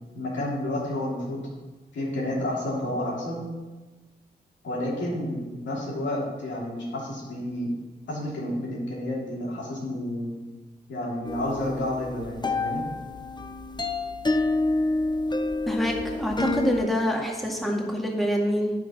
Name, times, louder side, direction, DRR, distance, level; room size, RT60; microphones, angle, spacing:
voice 1, 0.1-1.5 1.9-3.4 4.6-7.7 8.1-10.3 10.9-12.8, left 1 dB, 90° left, -5 dB, 3.0 m, -30 dB
sound 1, 11.3-16.9, left 2 dB, 25° left, 0.8 m, -28 dB
voice 2, 15.7-18.7, equal, ahead, -1 dB, 2.1 m, -26 dB
9.0 x 5.8 x 6.1 m, 1.2 s
cardioid pair, 50°, 18 cm